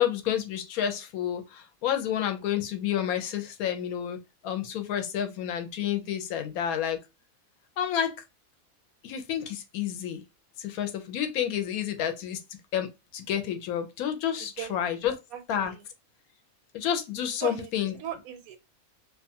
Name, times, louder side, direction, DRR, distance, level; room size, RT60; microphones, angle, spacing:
voice 1, 0.0-4.2 4.4-7.0 7.8-8.1 9.0-10.2 10.6-12.4 12.7-12.9 13.1-15.2 15.5-15.7 16.7-18.0, left 10 dB, 85° left, 1.1 m, -29 dB
voice 2, 14.4-15.9 17.3-18.6, right 11 dB, 80° right, 1.0 m, -40 dB
2.6 x 2.3 x 2.7 m
omnidirectional pair, 1.5 m